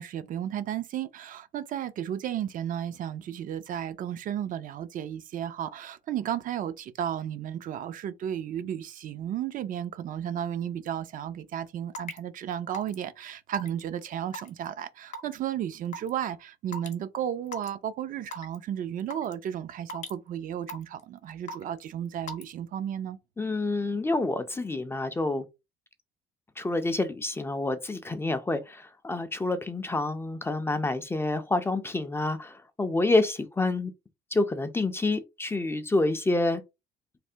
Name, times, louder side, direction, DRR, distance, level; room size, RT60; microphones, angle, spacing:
voice 1, 0.0-23.2, right 10 dB, 55° right, 0.4 m, -33 dB
Raindrop / Water tap faucet / Drip, 11.9-12.2 12.7-13.0 13.5-13.8 14.3-14.7 15.1-15.3 15.9-16.1 16.7-16.9 17.5-17.7 18.3-18.6 19.1-19.3 19.9-20.1 20.7-21.0 21.5-21.8 22.3-22.5, left 1 dB, 45° left, 0.8 m, -37 dB
voice 2, 23.4-25.5 26.6-33.9 34.3-36.6, left 2 dB, 15° left, 0.4 m, -28 dB
3.3 x 2.1 x 2.6 m
cardioid pair, 110°, 17 cm